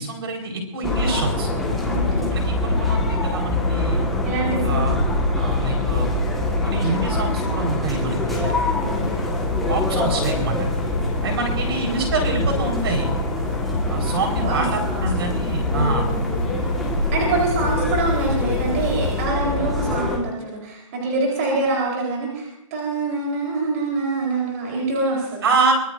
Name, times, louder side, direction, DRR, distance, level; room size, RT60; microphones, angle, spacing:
voice 1, 0.0-1.5 2.3-4.0 4.6-4.9 5.4-6.1 6.6-8.8 9.7-10.7 11.2-13.1 13.9-16.1 25.4-25.7, right 3 dB, 45° right, 1 dB, 4.8 m, -26 dB
sound 1, 0.8-20.2, left 2 dB, ahead, 1.7 m, -23 dB
voice 2, 1.9-2.3 4.2-4.8 11.6-12.0 14.4-15.1 15.7-16.1 17.1-25.5, right 3 dB, 25° right, -2 dB, 4.2 m, -25 dB
sound 2, 8.7-19.2, left 3 dB, 35° left, 7.6 m, -34 dB
24.0 x 20.5 x 2.7 m, 0.80 s
hypercardioid pair, 175°, 17 cm